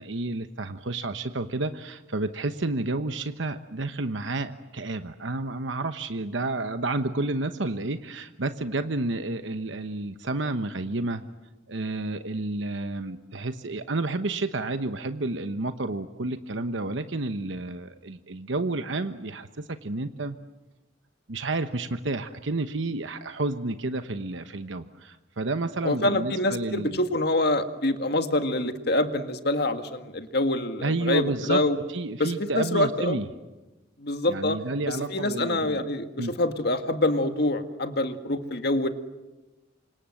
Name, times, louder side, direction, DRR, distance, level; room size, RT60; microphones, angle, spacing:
voice 1, 0.0-11.2 11.7-20.4 21.3-27.0 30.8-31.6 31.9-33.3 34.3-35.9 36.2-36.3, right 2 dB, 75° right, 9 dB, 1.1 m, -30 dB
voice 2, 25.8-31.8 32.2-33.2 34.0-34.6 34.9-38.9, left 1 dB, 55° left, 8 dB, 1.9 m, -26 dB
29.0 x 26.0 x 7.8 m, 1.1 s
head